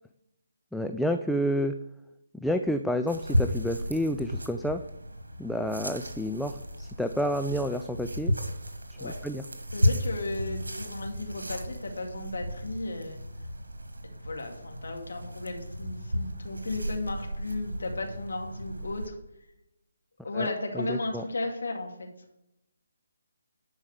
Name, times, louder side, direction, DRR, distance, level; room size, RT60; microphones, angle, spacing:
voice 1, 0.7-1.8 2.4-4.8 5.4-8.3 9.0-9.4 20.3-20.5 20.7-21.2, equal, ahead, 6 dB, 0.4 m, -29 dB
sound 1, 3.1-19.1, equal, 85° right, 1.6 m, -34 dB
voice 2, 9.7-13.2 14.2-19.2 20.2-22.1, left 2 dB, 70° left, 2 dB, 2.4 m, -34 dB
11.5 x 4.8 x 7.0 m, 0.86 s
figure-of-eight pair, 145°, 0 cm